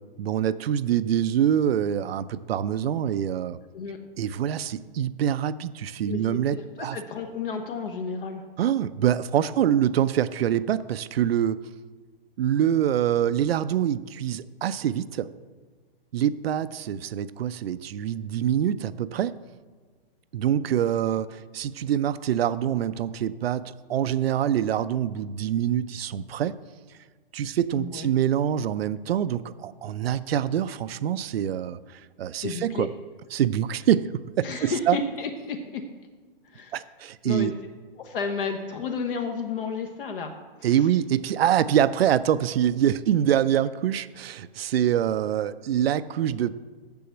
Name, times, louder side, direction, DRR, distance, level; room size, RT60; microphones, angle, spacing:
voice 1, 0.2-3.6 4.2-7.0 8.6-11.6 12.4-15.3 16.1-19.3 20.3-26.5 27.3-32.9 33.3-35.0 36.7-37.5 40.6-46.5, right 10 dB, 85° right, 14 dB, 0.5 m, -25 dB
voice 2, 6.1-8.4 27.7-28.1 32.4-32.9 34.4-35.8 36.4-36.9 37.2-37.5 38.0-40.3 40.6-40.9, left 5 dB, 65° left, 4 dB, 1.1 m, -32 dB
7.0 x 6.9 x 7.7 m, 1.4 s
hypercardioid pair, 145°, 29 cm